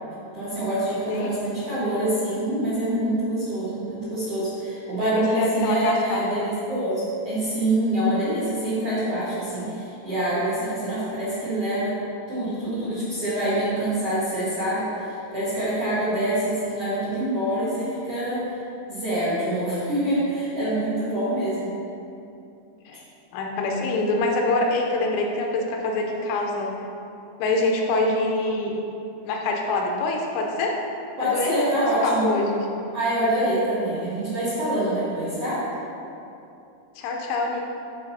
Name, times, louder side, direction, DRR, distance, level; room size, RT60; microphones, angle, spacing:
voice 1, 0.3-12.0 12.3-18.6 18.9-21.8 31.2-32.3 32.9-35.6, right 1 dB, 45° right, -12 dB, 2.0 m, -25 dB
voice 2, 5.0-6.5 22.9-23.0 23.3-26.7 27.4-28.7 29.3-30.7 31.2-32.6 37.0-37.6, left 2 dB, 85° left, 1 dB, 3.3 m, -25 dB
8.8 x 4.0 x 5.7 m, 2.7 s
omnidirectional pair, 5.4 m